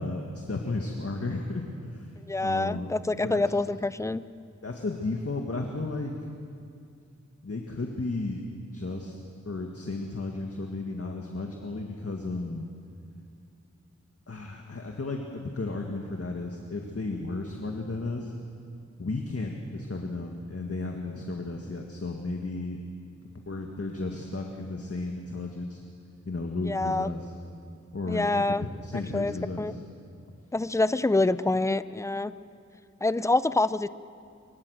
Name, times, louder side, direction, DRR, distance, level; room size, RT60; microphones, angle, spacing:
voice 1, 0.0-2.1 2.4-2.9 3.2-3.6 4.6-6.1 7.4-8.4 8.7-9.2 9.5-12.7 14.3-18.3 19.0-22.8 23.5-25.8 26.3-27.3 27.9-29.8, left 2 dB, 55° left, 1 dB, 1.9 m, -34 dB
voice 2, 2.3-4.2 26.6-27.1 28.1-28.6 29.1-29.7 30.5-32.3 33.0-33.9, left 2 dB, 10° left, 14 dB, 0.5 m, -26 dB
27.5 x 24.0 x 6.5 m, 2.4 s
wide cardioid pair, 80°, 29 cm